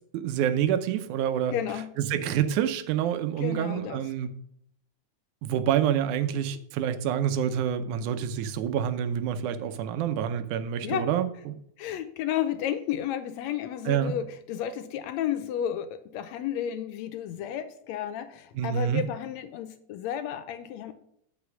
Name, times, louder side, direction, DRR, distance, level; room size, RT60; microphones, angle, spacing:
voice 1, 0.1-1.5 2.0-4.3 5.4-11.5 13.9-14.1 18.6-19.0, right 9 dB, 85° right, 11 dB, 2.2 m, -27 dB
voice 2, 1.5-1.9 3.4-4.0 10.8-11.1 11.8-20.9, left 10 dB, 75° left, 11 dB, 1.7 m, -32 dB
8.3 x 5.7 x 6.1 m, 0.69 s
omnidirectional pair, 3.4 m